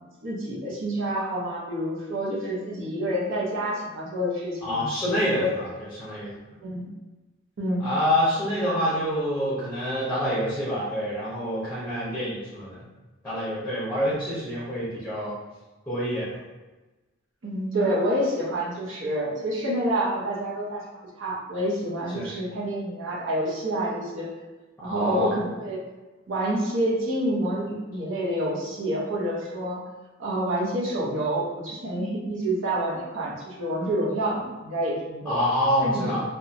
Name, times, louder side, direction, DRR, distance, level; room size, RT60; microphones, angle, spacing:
voice 1, 0.2-4.9 5.3-5.6 6.6-6.9 7.6-7.9 17.4-20.8 21.2-24.3 24.8-25.8 26.3-29.8 30.2-35.4 35.8-36.2, right 1 dB, 70° right, -4 dB, 0.7 m, -28 dB
voice 2, 4.6-5.7 6.0-6.3 7.8-12.8 13.2-15.3 15.9-16.3 22.1-22.3 24.8-25.4 35.3-36.2, equal, 10° left, -10 dB, 0.8 m, -26 dB
2.9 x 2.2 x 2.5 m, 1.2 s
head